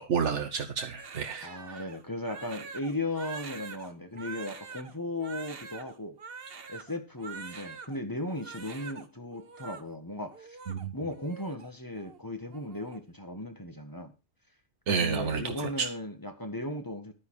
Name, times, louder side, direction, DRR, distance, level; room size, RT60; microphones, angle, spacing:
voice 1, 0.0-1.8 10.7-10.9 14.9-15.9, right 6 dB, 90° right, 4 dB, 1.3 m, -30 dB
Crying sobbing, 1.0-8.0 8.3-9.1 9.3-9.8 10.3-11.7 12.0-12.2 12.5-13.0, right 5 dB, 60° right, 1.3 m, -45 dB
voice 2, 1.4-6.2 6.7-10.6 10.9-14.1 15.0-17.1, left 1 dB, 20° left, 6 dB, 1.6 m, -36 dB
10.5 x 9.7 x 4.9 m, 0.30 s
omnidirectional pair, 1.2 m